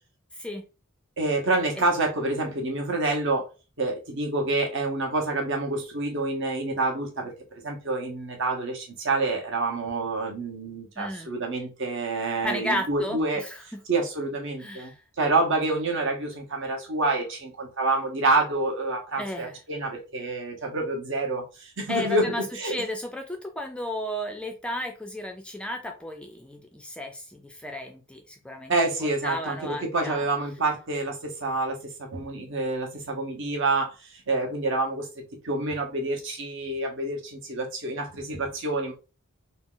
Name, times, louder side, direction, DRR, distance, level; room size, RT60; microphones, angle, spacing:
voice 1, 1.2-3.5 3.8-13.4 13.9-14.9 15.2-22.8 28.7-35.1 35.4-38.9, right 2 dB, 60° right, 1.2 m, -27 dB
voice 2, 11.0-11.3 12.4-13.8 14.6-15.0 19.2-19.6 21.9-28.7 29.2-30.2, left 1 dB, 5° left, 0.4 m, -33 dB
4.0 x 2.0 x 3.9 m
head